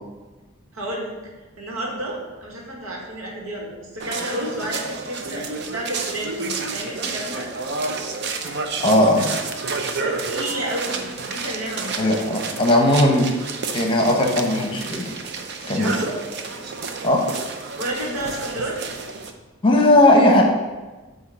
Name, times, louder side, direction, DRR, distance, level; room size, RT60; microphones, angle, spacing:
voice 1, 0.7-1.1 1.6-7.5 10.0-12.0 15.8-16.1 17.8-18.9, right 1 dB, 85° right, -1 dB, 1.7 m, -30 dB
sound 1, 4.0-19.3, right 4 dB, 50° right, 0.6 m, -30 dB
voice 2, 8.8-9.3 12.0-13.3 13.7-15.1 15.7-15.9 17.0-17.2 19.6-20.4, left 1 dB, 25° left, 1 dB, 0.9 m, -17 dB
8.2 x 2.8 x 5.6 m, 1.2 s
head